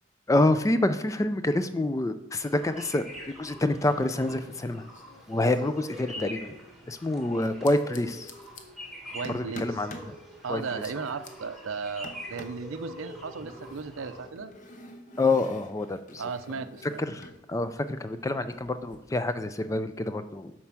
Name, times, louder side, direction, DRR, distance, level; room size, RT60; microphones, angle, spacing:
voice 1, 0.3-3.0 3.4-4.8 5.3-6.5 6.9-8.3 9.3-10.1 10.5-10.6 15.2-16.2 17.0-20.5, left 2 dB, 15° left, 11 dB, 0.3 m, -27 dB
sound 1, 2.4-14.3, equal, ahead, 1.3 m, -44 dB
sound 2, 3.0-3.5 3.8-6.4 7.4-8.6 9.2-10.1 10.6-11.3 12.0-12.7 13.4-17.4 17.7-19.0, left 1 dB, 40° left, 0.8 m, -48 dB
voice 2, 9.1-9.8 10.4-14.5 16.2-17.0, right 5 dB, 75° right, 11 dB, 0.5 m, -36 dB
7.4 x 4.5 x 5.9 m, 0.93 s
head